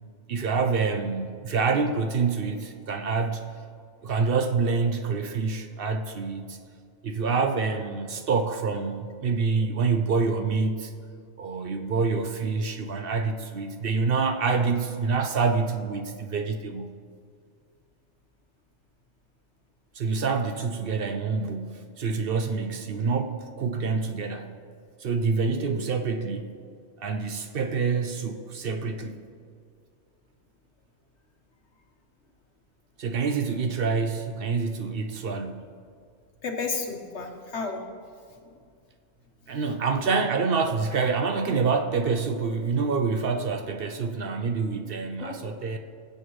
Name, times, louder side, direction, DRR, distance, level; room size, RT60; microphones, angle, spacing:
voice 1, 0.3-3.5 4.0-6.6 7.0-10.9 11.4-16.9 19.9-24.5 25.0-26.5 27.0-29.2 33.0-35.7 39.5-45.8, right 4 dB, 60° right, 7 dB, 0.8 m, -27 dB
voice 2, 36.4-37.8 38.4-38.5 45.2-45.8, left 4 dB, 70° left, 3 dB, 1.5 m, -33 dB
20.5 x 7.8 x 3.1 m, 2.2 s
omnidirectional pair, 1.2 m